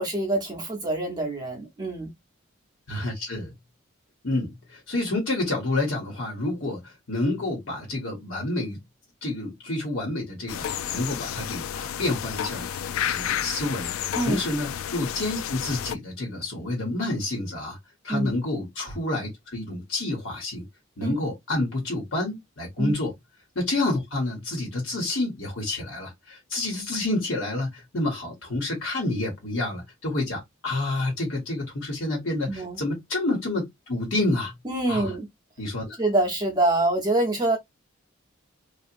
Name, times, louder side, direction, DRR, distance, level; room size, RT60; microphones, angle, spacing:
voice 1, 0.0-2.1 14.1-14.4 18.1-18.3 21.0-21.1 22.8-22.9 32.5-32.8 34.6-35.3 36.0-37.6, right 2 dB, 20° right, 0.7 m, -25 dB
voice 2, 2.9-3.5 4.2-8.8 9.2-12.7 13.1-17.8 18.0-20.6 21.0-23.1 23.5-34.5 34.9-35.1 35.6-36.0, left 2 dB, 70° left, 1.3 m, -29 dB
sound 1, 10.5-15.9, left 9 dB, 90° left, 0.3 m, -31 dB
2.8 x 2.4 x 2.5 m
head